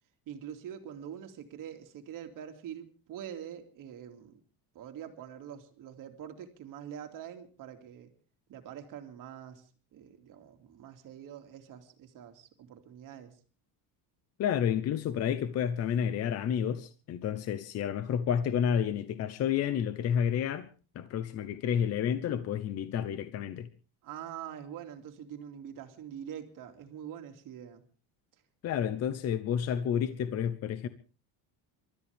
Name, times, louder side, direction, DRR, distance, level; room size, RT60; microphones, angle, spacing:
voice 1, 0.3-4.4 4.7-8.1 8.5-13.4 24.0-27.8, right 9 dB, 45° right, 2.6 m, -45 dB
voice 2, 14.4-20.7 20.9-23.7 28.6-30.9, left 8 dB, 35° left, 0.8 m, -30 dB
28.5 x 13.5 x 3.5 m
cardioid pair, 175°, 43 cm